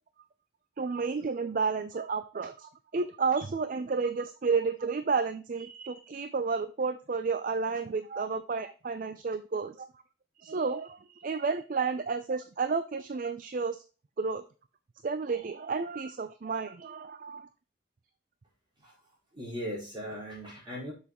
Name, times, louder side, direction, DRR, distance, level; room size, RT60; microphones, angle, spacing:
voice 1, 0.8-9.9 10.4-13.8 14.2-14.4 15.0-17.5, right 4 dB, 45° right, 12 dB, 0.4 m, -31 dB
voice 2, 19.3-20.9, equal, 25° right, -5 dB, 4.4 m, -38 dB
7.2 x 6.9 x 3.0 m, 0.35 s
head